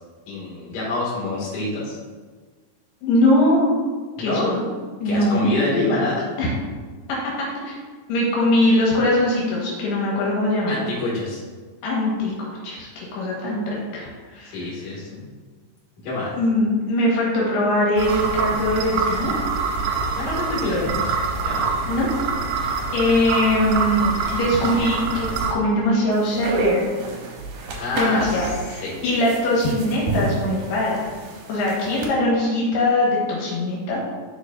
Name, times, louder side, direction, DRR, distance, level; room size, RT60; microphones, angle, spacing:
voice 1, 0.3-2.0 4.2-4.5 5.0-6.2 10.7-11.4 14.5-15.2 16.0-16.3 20.1-21.1 21.4-21.7 27.8-28.5 28.8-29.0, left 2 dB, 50° left, -7 dB, 3.2 m, -26 dB
voice 2, 3.0-3.7 4.2-4.7 5.0-5.5 6.4-6.5 7.7-7.8 8.1-10.8 11.8-14.6 16.4-19.4 21.9-22.1 22.5-26.8 27.9-31.1 31.5-34.0, left 1 dB, 85° left, -5 dB, 3.6 m, -21 dB
sound 1, 18.0-25.5, right 4 dB, 90° right, 2.9 m, -25 dB
sound 2, 26.1-32.1, right 2 dB, 70° right, 2.1 m, -29 dB
11.0 x 4.4 x 2.6 m, 1.4 s
omnidirectional pair, 4.5 m